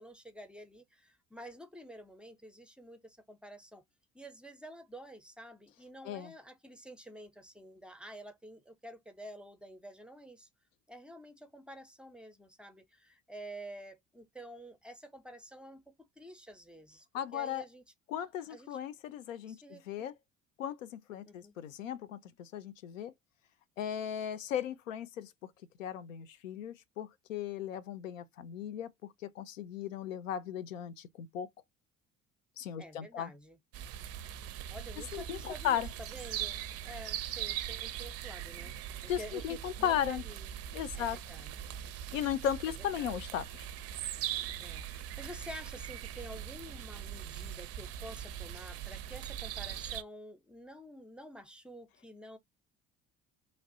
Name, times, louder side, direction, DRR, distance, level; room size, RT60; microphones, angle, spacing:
voice 1, 0.0-3.8 4.1-10.5 10.9-17.1 17.3-17.8 18.5-18.8 19.5-20.1 21.2-21.6 32.8-33.6 34.7-38.8 39.0-40.5 40.9-41.7 43.0-43.2 44.6-52.4, equal, 5° right, 0.7 m, -49 dB
voice 2, 17.1-17.6 18.1-20.1 20.6-23.1 23.8-25.3 25.8-28.9 29.2-31.5 32.6-33.3 35.1-35.9 39.1-40.2 40.7-41.2 42.1-43.7, left 10 dB, 80° left, 0.5 m, -36 dB
sound 1, 33.7-50.0, right 11 dB, 40° right, 0.5 m, -41 dB
3.2 x 2.4 x 2.6 m
figure-of-eight pair, 55°, 38 cm